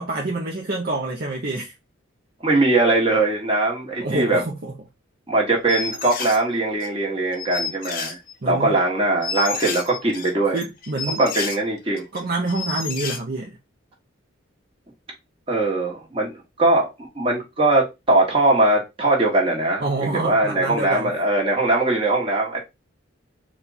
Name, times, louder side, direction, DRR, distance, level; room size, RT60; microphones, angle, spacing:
voice 1, 0.0-1.7 4.0-4.7 8.4-8.8 10.5-11.2 12.1-13.6 19.8-21.2, right 2 dB, 45° right, 0.7 m, -27 dB
voice 2, 2.4-4.4 5.3-8.2 8.4-10.6 11.2-12.0 15.5-22.6, right 2 dB, 25° right, 1.4 m, -21 dB
sound 1, 5.7-6.4 6.8-6.9 7.3-8.5 8.8-8.9 9.2-11.6 12.0-12.2 12.5-13.2, left 5 dB, 45° left, 0.7 m, -30 dB
4.2 x 2.4 x 4.0 m
head